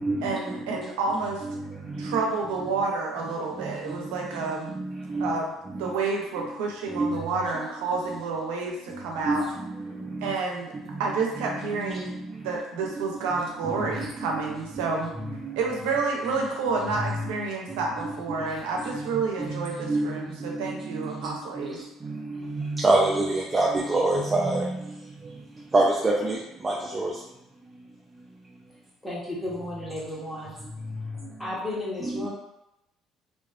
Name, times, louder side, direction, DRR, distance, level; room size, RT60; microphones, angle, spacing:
voice 1, 0.2-1.4 2.0-4.8 5.2-5.5 5.8-9.4 10.2-10.7 11.0-12.2 12.4-15.1 15.6-21.8, right 4 dB, 90° right, 0 dB, 0.5 m, -29 dB
voice 2, 22.8-24.7 25.7-26.4 26.6-27.1, right 2 dB, 25° right, -3 dB, 0.3 m, -23 dB
voice 3, 29.0-30.5 31.4-32.3, left 1 dB, 10° left, -7 dB, 0.8 m, -33 dB
2.5 x 2.3 x 2.3 m, 0.89 s
supercardioid pair, 90°, 0 cm